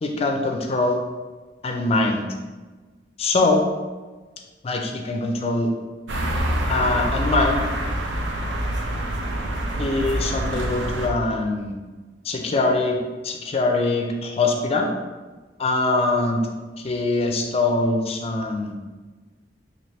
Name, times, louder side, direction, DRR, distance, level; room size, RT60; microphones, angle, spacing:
voice 1, 0.0-1.0 1.6-2.3 3.2-3.6 4.6-5.7 6.7-7.6 9.8-11.8 12.2-14.9 15.6-16.5 16.8-18.7, left 2 dB, 35° left, 3 dB, 0.4 m, -23 dB
sound 1, 6.1-11.1, right 1 dB, 85° right, 0.5 m, -26 dB
3.2 x 2.6 x 4.1 m, 1.3 s
head